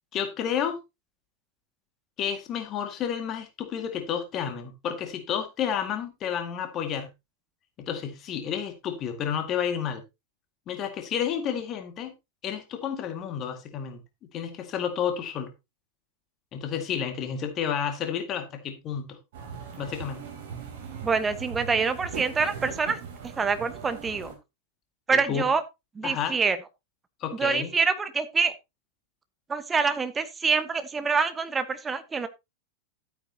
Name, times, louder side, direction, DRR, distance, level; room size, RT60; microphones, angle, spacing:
voice 1, 0.1-0.8 2.2-7.1 7.8-10.0 10.7-12.1 12.4-14.0 14.3-15.5 16.5-19.2 19.8-20.2 25.3-25.5 26.0-26.4 27.2-27.7, left 8 dB, 30° left, 2.0 m, -31 dB
sound 1, 19.3-24.3, right 6 dB, 55° right, 3.4 m, -39 dB
voice 2, 21.0-23.0 23.2-24.3 25.1-25.6 25.9-26.6 27.4-28.5 29.5-32.3, right 5 dB, 15° right, 1.0 m, -26 dB
12.5 x 8.8 x 2.8 m
figure-of-eight pair, 90°, 0 cm